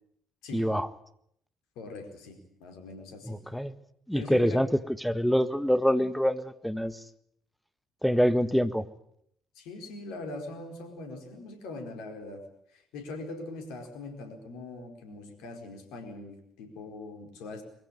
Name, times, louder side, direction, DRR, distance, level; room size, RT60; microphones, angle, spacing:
voice 1, 0.5-0.9 3.3-3.8 4.1-4.7 5.0-7.0 8.0-8.8, equal, ahead, 12 dB, 1.6 m, -25 dB
voice 2, 1.7-3.4 4.1-4.6 9.5-12.4 12.7-17.6, left 2 dB, 65° left, 5 dB, 4.6 m, -41 dB
22.5 x 15.5 x 10.0 m, 0.71 s
figure-of-eight pair, 45°, 0 cm